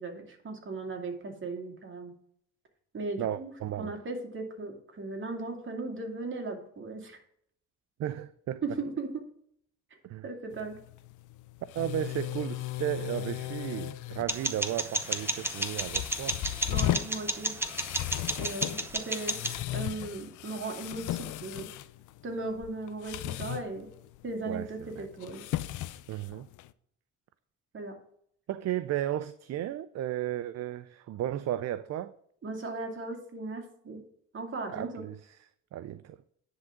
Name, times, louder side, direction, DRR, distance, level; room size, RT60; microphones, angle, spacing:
voice 1, 0.0-2.1 2.9-3.5 3.8-7.2 8.6-9.1 10.2-10.8 16.7-17.5 18.4-19.4 19.7-21.7 22.2-23.9 24.2-25.4 27.7-27.9 32.4-34.0 34.3-35.0, right 3 dB, 40° right, 2.5 m, -37 dB
voice 2, 3.2-3.9 8.0-8.6 10.0-10.2 11.7-16.4 24.5-25.1 26.1-26.5 28.5-32.1 34.7-35.4 35.7-36.2, right 12 dB, 60° right, 0.5 m, -34 dB
sound 1, 10.5-26.7, left 15 dB, 80° left, 0.5 m, -37 dB
sound 2, 14.3-19.6, right 1 dB, 10° right, 1.0 m, -33 dB
10.0 x 3.8 x 7.3 m
cardioid pair, 90°, 30 cm